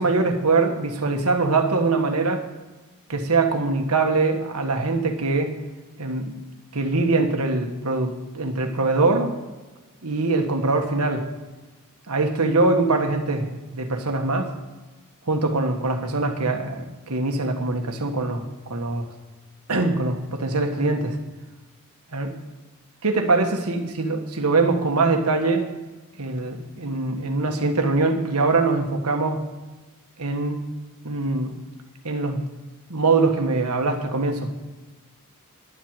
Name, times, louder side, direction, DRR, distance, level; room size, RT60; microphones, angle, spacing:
voice 1, 0.0-2.4 3.1-5.6 6.0-6.3 6.7-9.3 10.0-11.3 12.1-14.5 15.3-19.1 19.7-21.2 22.1-22.3 23.0-25.7 26.2-29.5 30.2-30.6 31.0-31.6 32.0-32.4 32.9-34.5, right 3 dB, 80° right, 4 dB, 1.6 m, -23 dB
11.5 x 7.8 x 8.9 m, 1.2 s
head